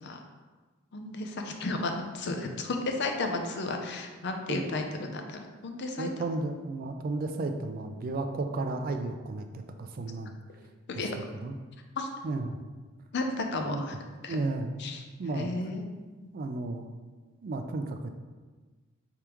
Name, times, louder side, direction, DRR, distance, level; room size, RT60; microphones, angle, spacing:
voice 1, 0.9-6.1 10.9-11.1 12.0-12.1 13.1-14.0 14.2-14.4 14.8-15.0 15.3-15.8, left 3 dB, 55° left, 4 dB, 0.5 m, -33 dB
voice 2, 6.0-10.4 10.9-11.6 12.2-12.6 13.6-13.8 14.3-14.7 15.2-15.5 16.3-16.9 17.4-18.1, right 2 dB, 45° right, 6 dB, 0.3 m, -33 dB
4.7 x 3.5 x 3.0 m, 1.3 s
head